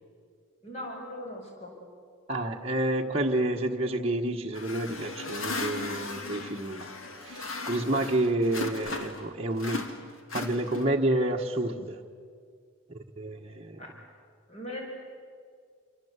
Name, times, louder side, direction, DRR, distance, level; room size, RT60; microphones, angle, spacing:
voice 1, 0.6-1.8 13.8-13.9 14.5-14.8, left 1 dB, 30° left, 0 dB, 5.7 m, -39 dB
voice 2, 2.3-6.9 7.2-9.9 10.3-12.0 12.9-13.8, right 1 dB, 30° right, -1 dB, 1.3 m, -29 dB
sound 1, 4.5-9.3 9.6-11.1, left 3 dB, 70° left, 2.3 m, -37 dB
28.5 x 24.5 x 8.2 m, 2.1 s
head